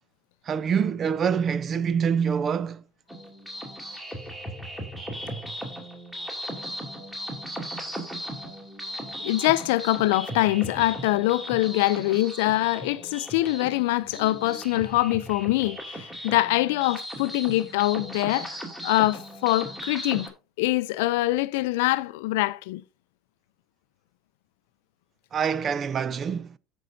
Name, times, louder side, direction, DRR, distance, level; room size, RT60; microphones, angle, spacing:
voice 1, 0.5-2.8 25.3-26.6, right 7 dB, 35° right, 0.5 m, -25 dB
sound 1, 3.1-20.3, equal, 10° right, 2.8 m, -37 dB
voice 2, 9.2-20.3 20.6-22.8, left 18 dB, 80° left, 0.4 m, -24 dB
16.0 x 5.4 x 2.6 m
supercardioid pair, 105°, 0 cm